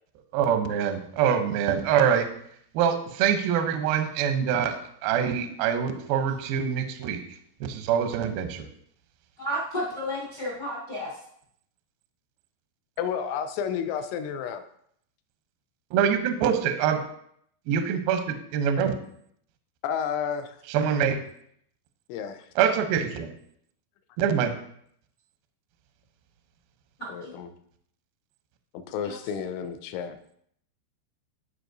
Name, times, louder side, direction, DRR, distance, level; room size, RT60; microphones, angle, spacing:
voice 1, 0.3-2.3 2.7-4.8 5.0-7.2 7.6-8.7 15.9-17.0 17.7-19.0 20.7-21.2 22.6-23.3 24.2-24.5, right 8 dB, 80° right, 7 dB, 2.1 m, -24 dB
voice 2, 9.4-11.1 27.2-27.3 29.0-29.2, equal, 65° left, -7 dB, 0.9 m, -32 dB
voice 3, 13.0-14.6 19.8-20.6 22.1-22.5 27.1-27.5 28.7-30.2, left 8 dB, 85° left, 9 dB, 2.9 m, -31 dB
14.5 x 4.9 x 2.6 m, 0.67 s
omnidirectional pair, 5.2 m